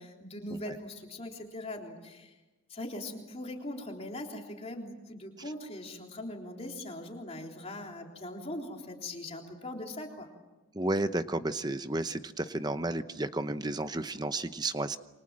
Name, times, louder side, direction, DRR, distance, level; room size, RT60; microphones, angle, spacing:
voice 1, 0.0-2.3 2.7-10.3, left 1 dB, 30° left, 1 dB, 3.6 m, -41 dB
voice 2, 10.7-15.0, right 2 dB, 20° right, 11 dB, 0.8 m, -32 dB
28.0 x 25.5 x 7.6 m, 1.1 s
head